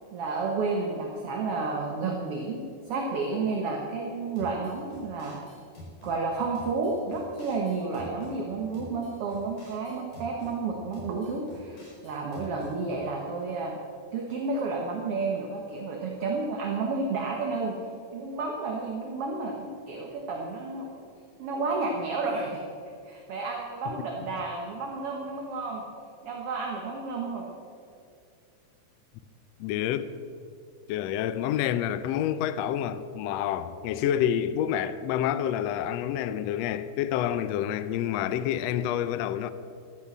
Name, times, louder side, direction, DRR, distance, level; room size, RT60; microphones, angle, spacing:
voice 1, 0.1-2.6 2.9-5.4 6.0-13.8 14.1-17.8 18.1-20.9 21.4-22.6 23.0-25.8 26.2-27.5, right 3 dB, 55° right, 1.9 m, -31 dB
sound 1, 4.4-6.2 6.5-8.4 8.7-10.5 10.9-12.7, left 1 dB, 70° left, 5.5 m, -47 dB
voice 2, 29.6-30.1 30.9-39.5, left 10 dB, 85° left, 1.5 m, -28 dB
12.5 x 11.0 x 7.2 m
omnidirectional pair, 3.7 m